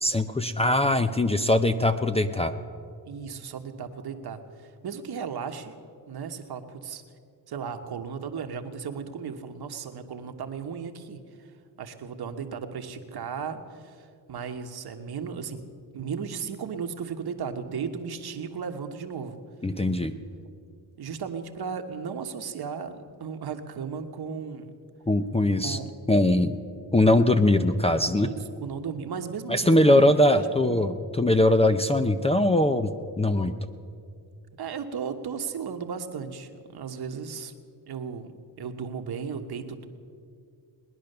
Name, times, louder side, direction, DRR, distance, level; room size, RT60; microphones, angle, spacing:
voice 1, 0.0-2.5 19.6-20.1 25.1-25.8 26.1-26.6 26.9-28.3 29.5-32.9 33.2-33.5, left 1 dB, 15° left, 8 dB, 0.6 m, -21 dB
voice 2, 3.0-4.4 4.8-5.7 6.1-7.0 7.5-11.2 11.8-15.6 15.9-19.4 21.0-24.7 25.6-25.9 28.2-30.0 30.3-30.9 34.6-37.5 37.9-39.9, right 6 dB, 60° right, 6 dB, 1.3 m, -35 dB
20.0 x 10.5 x 6.7 m, 2.4 s
cardioid pair, 95°, 44 cm